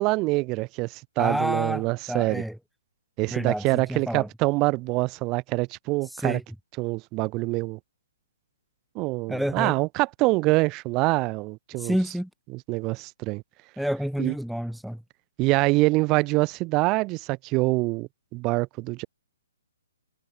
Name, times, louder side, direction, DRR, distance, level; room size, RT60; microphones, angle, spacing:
voice 1, 0.0-2.4 3.2-6.4 6.8-7.8 9.0-11.9 12.7-13.4 14.2-14.3 15.4-19.1, right 23 dB, 25° right, 5.4 m, -25 dB
voice 2, 1.2-2.6 3.3-4.3 6.0-6.4 9.3-9.7 11.8-12.3 13.8-15.0, equal, ahead, 3.6 m, -29 dB
figure-of-eight pair, 135°, 0 cm